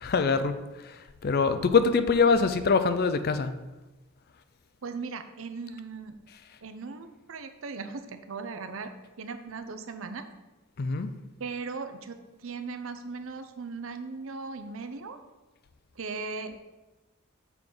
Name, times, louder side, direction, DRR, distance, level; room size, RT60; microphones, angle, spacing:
voice 1, 0.0-3.5 10.8-11.1, left 4 dB, 45° left, 11 dB, 0.4 m, -24 dB
voice 2, 4.8-6.1 6.6-8.9 9.2-10.3 11.4-15.2 16.0-16.6, right 4 dB, 65° right, 8 dB, 0.6 m, -38 dB
6.9 x 3.8 x 5.9 m, 1.1 s
head